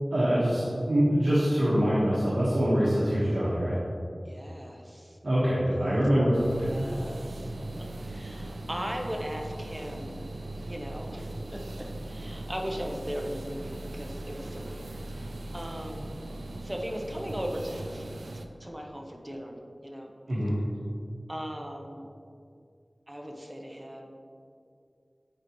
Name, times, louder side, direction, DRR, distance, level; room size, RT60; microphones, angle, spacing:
voice 1, 0.1-3.8 5.2-6.7 20.3-20.5, equal, 70° right, -9 dB, 1.3 m, -24 dB
voice 2, 4.2-5.2 5.7-5.8 6.6-7.5 8.0-10.2 10.7-14.8 15.2-15.3 15.5-16.1 16.6-18.1 18.6-19.6 19.8-20.1 21.3-22.1 23.1-24.2, equal, 20° right, 1 dB, 0.8 m, -38 dB
sound 1, 6.3-18.5, right 2 dB, 90° right, 0.4 m, -39 dB
8.8 x 5.0 x 3.0 m, 2.5 s
wide cardioid pair, 55°, 0 cm